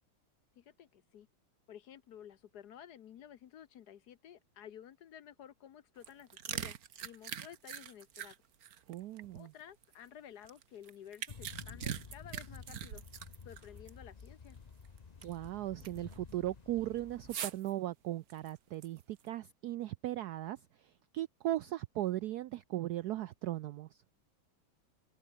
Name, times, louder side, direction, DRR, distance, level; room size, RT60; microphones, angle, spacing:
voice 1, 0.6-1.3 1.7-6.8 7.0-8.3 9.3-13.0 13.4-14.6, left 9 dB, 60° left, 1.3 m, -53 dB
sound 1, 6.0-9.9 10.4-13.9 14.2-14.3 14.8-15.5 15.8-16.1 17.3-17.7 18.3-19.2, right 9 dB, 55° right, 1.4 m, -42 dB
voice 2, 8.9-9.5 15.2-20.6 21.1-23.9, right 14 dB, 75° right, 0.9 m, -37 dB
sound 2, 11.3-17.4, left 5 dB, 90° left, 0.3 m, -52 dB
omnidirectional pair, 2.2 m